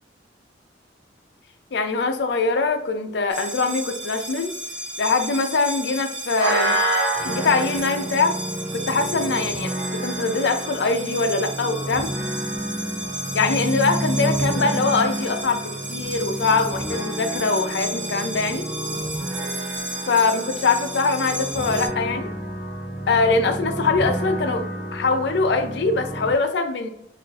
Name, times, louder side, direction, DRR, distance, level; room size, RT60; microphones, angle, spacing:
voice 1, 1.7-4.5 5.0-6.8 7.2-8.4 8.7-12.1 13.3-18.7 20.1-22.3 23.1-26.9, left 3 dB, 65° left, 0.4 m, -23 dB
sound 1, 3.3-21.9, right 1 dB, 75° right, 1.0 m, -31 dB
sound 2, 7.1-26.3, right 1 dB, 25° right, 1.4 m, -30 dB
4.6 x 2.4 x 2.3 m
head